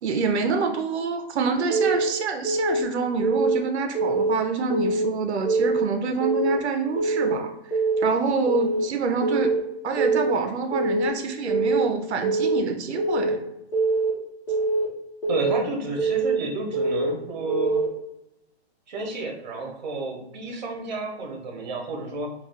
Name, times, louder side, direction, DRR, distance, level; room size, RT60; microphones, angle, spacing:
voice 1, 0.0-7.5 8.0-9.6 9.8-13.4, right 4 dB, 90° right, 5 dB, 0.5 m, -26 dB
Keyboard (musical) / Alarm, 1.7-2.1 2.4-2.8 3.2-3.6 3.9-4.3 4.7-5.1 5.5-5.8 6.2-6.6 7.0-7.3 7.7-8.1 8.5-8.8 9.2-9.6 10.0-10.3 10.7-11.1 11.5-11.8 12.2-12.6 13.0-13.4 13.7-14.1 14.5-14.9 15.2-15.6 16.0-16.4 16.7-17.1 17.5-17.9, right 3 dB, 60° left, 1.0 m, -23 dB
voice 2, 15.3-17.8 18.9-22.3, right 2 dB, 45° right, 1 dB, 0.7 m, -31 dB
2.3 x 2.3 x 3.3 m, 0.87 s
hypercardioid pair, 170°, 32 cm